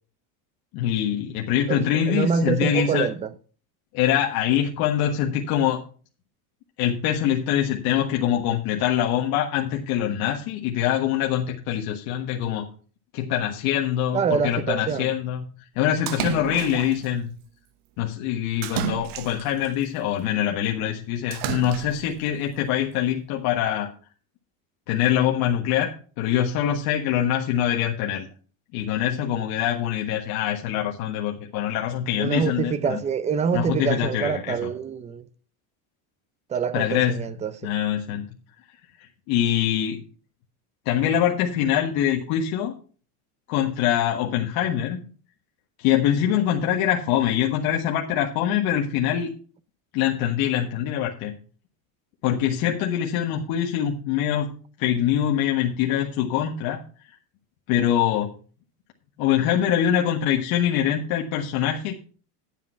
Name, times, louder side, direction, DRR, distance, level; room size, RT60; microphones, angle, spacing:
voice 1, 0.7-3.1 3.9-5.8 6.8-12.7 13.1-15.4 15.7-17.3 18.0-23.9 24.9-28.3 28.7-33.0 33.5-34.7 36.7-37.1 37.6-38.3 39.3-40.0 40.8-42.7 43.5-45.0 45.8-49.3 49.9-51.3 52.2-54.5 54.8-56.8 57.7-58.3 59.2-62.0, left 10 dB, 55° left, 1.5 m, -24 dB
voice 2, 1.7-3.3 14.1-15.1 32.2-35.3 36.5-37.7, right 6 dB, 15° right, 0.5 m, -26 dB
Splash splatter, 16.1-17.1 18.6-19.7 21.3-22.1, right 12 dB, 50° right, 0.9 m, -31 dB
10.0 x 7.1 x 5.6 m
supercardioid pair, 150°, 43 cm